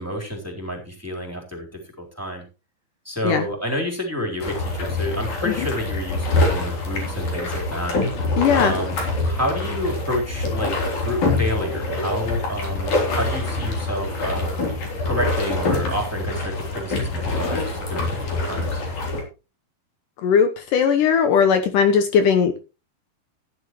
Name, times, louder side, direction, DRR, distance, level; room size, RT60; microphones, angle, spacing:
voice 1, 0.0-1.7 2.0-2.4 3.0-8.0 8.5-10.7 11.0-14.5 15.0-18.2 18.4-18.8, equal, 5° right, 1 dB, 3.3 m, -29 dB
sound 1, 4.4-19.2, left 2 dB, 55° left, 4.9 m, -25 dB
voice 2, 8.4-8.7 20.2-22.6, left 7 dB, 70° left, 8 dB, 2.4 m, -18 dB
14.5 x 11.0 x 3.1 m, 0.30 s
omnidirectional pair, 4.1 m